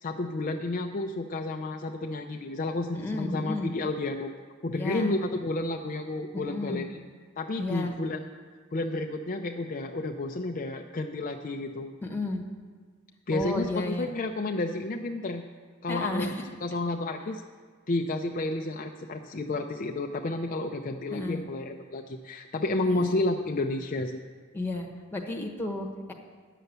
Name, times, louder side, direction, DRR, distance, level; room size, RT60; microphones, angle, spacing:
voice 1, 0.0-4.3 4.6-7.0 7.4-8.2 8.7-11.9 13.3-15.4 15.8-16.3 16.6-17.4 17.9-24.2, left 2 dB, 40° left, 3 dB, 0.5 m, -31 dB
voice 2, 2.9-3.7 4.7-5.2 6.3-6.8 7.6-7.9 12.0-12.4 13.3-14.1 15.9-16.3 21.1-21.4 22.8-23.2 24.5-26.1, left 2 dB, 10° left, 1 dB, 1.1 m, -32 dB
10.0 x 6.7 x 8.0 m, 1.5 s
head